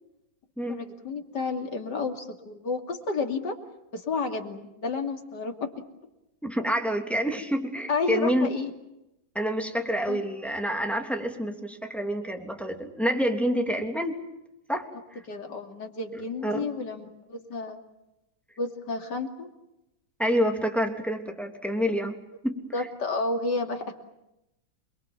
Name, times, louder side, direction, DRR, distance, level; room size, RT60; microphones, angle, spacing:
voice 1, 0.7-3.6 3.9-5.8 7.9-8.7 10.0-10.2 15.3-17.8 18.6-19.5 22.7-23.9, left 3 dB, 60° left, 4 dB, 3.4 m, -31 dB
voice 2, 6.4-8.5 9.3-14.2 14.7-15.2 16.1-16.6 20.2-22.1 22.4-22.9, equal, ahead, 4 dB, 3.1 m, -28 dB
28.5 x 23.0 x 7.3 m, 0.89 s
omnidirectional pair, 2.1 m